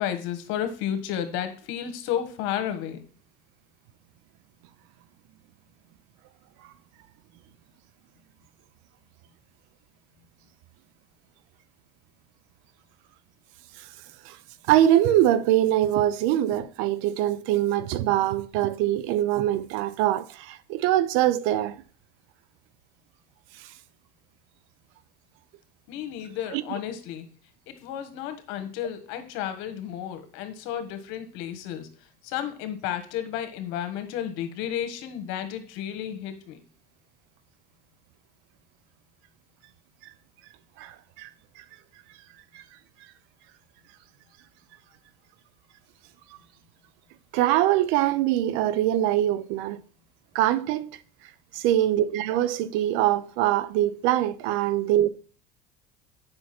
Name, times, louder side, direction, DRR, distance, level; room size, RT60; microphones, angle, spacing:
voice 1, 0.0-3.0 25.9-27.3 27.7-31.9 32.2-36.6, left 10 dB, 75° left, 1.4 m, -32 dB
voice 2, 14.7-21.8 23.5-23.7 26.5-26.6 40.8-41.3 41.6-41.7 42.5-42.6 47.3-49.8 50.3-50.9 51.5-55.1, right 12 dB, 75° right, 0.6 m, -23 dB
7.8 x 5.7 x 4.3 m
supercardioid pair, 95°, 20 cm